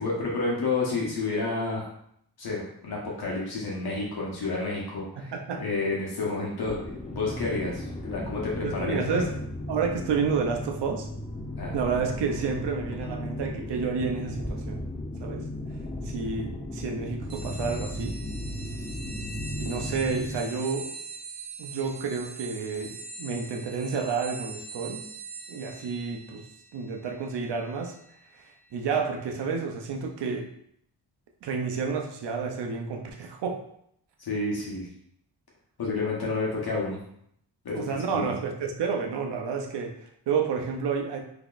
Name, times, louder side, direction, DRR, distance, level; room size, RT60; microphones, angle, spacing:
voice 1, 0.0-1.8 2.4-6.8 7.1-9.2 11.6-11.7 34.2-34.9 35.8-37.0 37.6-38.3, left 3 dB, 65° left, -4 dB, 1.0 m, -30 dB
voice 2, 5.2-5.6 8.6-9.3 9.7-11.1 11.7-14.8 15.2-15.5 16.0-18.2 19.6-20.9 21.6-25.0 25.5-26.5 26.7-27.9 28.4-30.5 31.4-33.6 37.7-41.2, right 5 dB, 80° right, 3 dB, 0.6 m, -30 dB
sound 1, 6.6-20.4, left 1 dB, 15° left, 0.4 m, -35 dB
sound 2, 17.3-29.4, right 3 dB, 55° right, 0.9 m, -43 dB
3.8 x 2.8 x 2.4 m, 0.71 s
wide cardioid pair, 115°, 41 cm